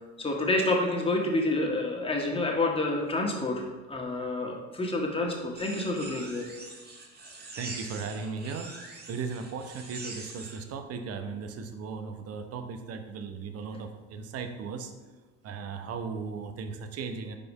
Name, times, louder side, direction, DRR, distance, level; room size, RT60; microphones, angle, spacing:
voice 1, 0.2-6.4, left 2 dB, 15° left, -1 dB, 1.6 m, -28 dB
sound 1, 5.6-10.6, right 2 dB, 30° right, 1.6 m, -43 dB
voice 2, 7.6-14.9 15.4-17.4, right 5 dB, 45° right, 7 dB, 0.9 m, -37 dB
4.9 x 4.7 x 5.5 m, 1.2 s
hypercardioid pair, 75°, 34 cm